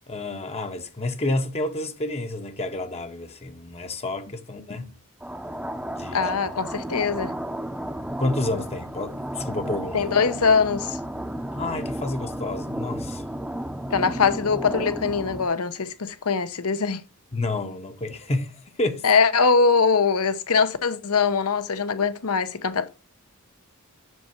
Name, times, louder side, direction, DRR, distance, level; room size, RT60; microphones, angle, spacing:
voice 1, 0.1-4.9 5.9-6.3 8.2-10.1 11.6-13.2 17.3-19.0, left 2 dB, 30° left, 0.8 m, -30 dB
sound 1, 5.2-15.5, right 1 dB, 5° right, 0.7 m, -33 dB
voice 2, 6.1-7.3 9.9-11.0 13.9-17.0 19.0-22.9, left 5 dB, 75° left, 0.9 m, -22 dB
7.7 x 6.6 x 4.5 m
head